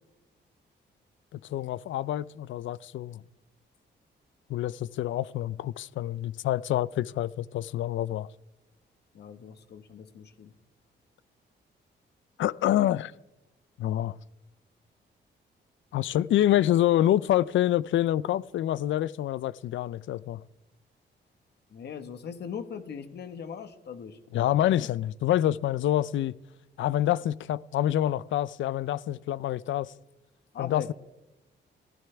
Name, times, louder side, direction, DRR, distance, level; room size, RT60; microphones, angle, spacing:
voice 1, 1.5-3.2 4.5-8.3 12.4-13.1 13.8-14.2 15.9-20.4 24.3-26.3 26.8-29.9 30.6-30.9, left 12 dB, 85° left, 0.5 m, -27 dB
voice 2, 9.1-10.5 21.7-24.2 30.5-30.9, left 7 dB, 60° left, 1.4 m, -40 dB
25.5 x 15.5 x 3.5 m
wide cardioid pair, 175°, 19 cm